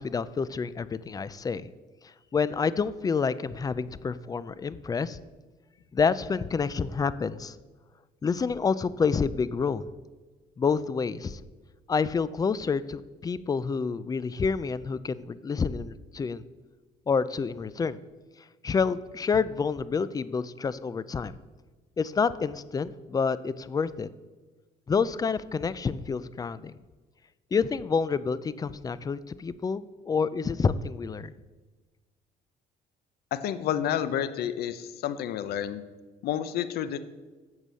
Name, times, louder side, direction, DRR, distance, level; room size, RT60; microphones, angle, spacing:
voice 1, 0.0-1.7 2.0-5.2 5.9-7.6 8.2-9.8 10.6-11.4 11.9-16.4 17.1-18.0 18.6-21.3 22.0-24.1 24.9-26.8 27.5-31.3, left 5 dB, 20° left, 17 dB, 0.4 m, -28 dB
voice 2, 33.3-35.8 36.2-37.0, left 10 dB, 70° left, 13 dB, 0.7 m, -30 dB
8.3 x 7.2 x 6.3 m, 1.3 s
cardioid pair, 110°, 17 cm